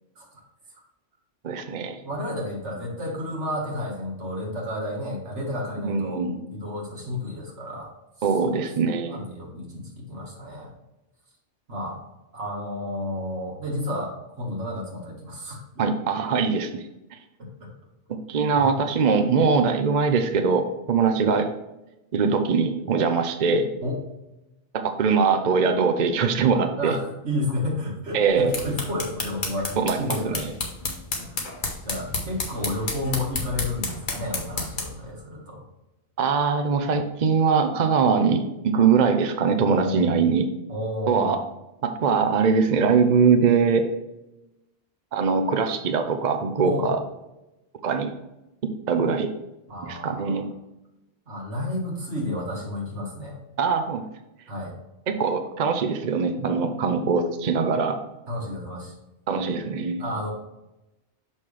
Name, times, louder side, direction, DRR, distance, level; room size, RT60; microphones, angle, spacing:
voice 1, 1.4-2.0 5.8-6.4 8.2-9.2 15.8-17.2 18.1-21.5 22.1-23.7 24.7-27.0 28.1-28.5 29.8-30.5 36.2-40.5 41.1-41.4 41.8-43.9 45.1-47.0 47.8-48.1 48.9-49.3 49.8-50.5 53.6-54.0 55.1-58.0 59.3-60.0, right 5 dB, 50° right, 7 dB, 0.6 m, -22 dB
voice 2, 2.0-7.9 8.2-8.3 9.1-10.7 11.7-12.0 12.3-15.9 17.4-17.7 18.5-18.7 22.9-23.1 23.8-24.0 26.8-30.4 31.2-31.5 31.8-35.6 39.6-40.2 40.7-41.3 46.6-46.9 49.7-50.5 51.3-53.4 54.5-54.7 58.3-59.0 60.0-60.3, left 1 dB, 80° right, -2 dB, 2.0 m, -31 dB
sound 1, 28.2-35.0, left 3 dB, 45° left, 1.3 m, -32 dB
6.4 x 5.6 x 3.3 m, 0.96 s
omnidirectional pair, 1.2 m